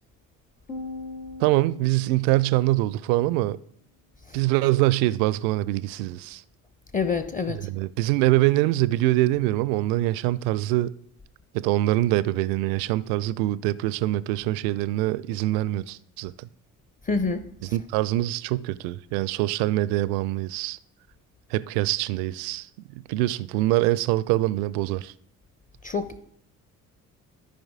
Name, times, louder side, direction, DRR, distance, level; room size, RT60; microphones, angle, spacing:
sound 1, 0.7-3.1, left 2 dB, 85° left, 1.8 m, -40 dB
voice 1, 1.4-3.6 4.3-6.4 7.7-10.9 11.5-16.5 17.7-20.8 21.5-22.7 23.1-25.1, right 17 dB, 55° right, 0.5 m, -24 dB
voice 2, 6.9-7.7 17.0-17.8 25.8-26.2, left 4 dB, 20° left, 0.6 m, -28 dB
14.0 x 5.0 x 3.7 m
figure-of-eight pair, 50°, 44 cm